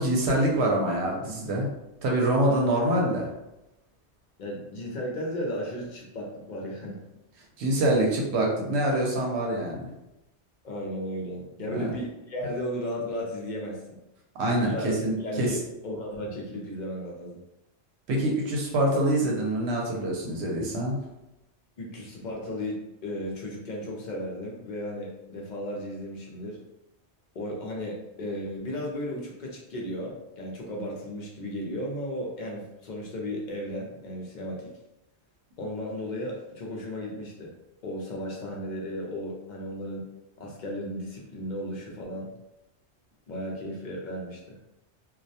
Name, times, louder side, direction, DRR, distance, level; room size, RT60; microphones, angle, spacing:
voice 1, 0.0-1.7 2.0-3.3 7.6-9.9 11.7-11.9 14.4-15.5 18.1-21.0, right 1 dB, 75° right, -1 dB, 0.8 m, -25 dB
voice 2, 4.4-7.0 10.6-14.0 14.6-17.4 21.8-26.6 27.3-34.7 35.6-37.5 37.8-40.1 40.4-42.3 43.3-44.6, equal, 55° left, -2 dB, 0.5 m, -35 dB
2.2 x 2.1 x 2.6 m, 0.90 s
omnidirectional pair, 1.1 m